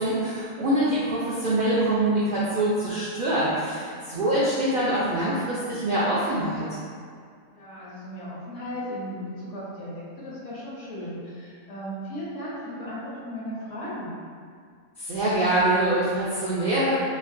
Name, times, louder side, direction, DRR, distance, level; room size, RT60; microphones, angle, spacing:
voice 1, 0.0-6.6 15.0-17.0, right 1 dB, 70° right, -9 dB, 0.5 m, -24 dB
voice 2, 4.0-4.4 7.5-14.1, equal, 65° left, -8 dB, 1.0 m, -36 dB
3.1 x 2.1 x 2.5 m, 2.1 s
omnidirectional pair, 1.4 m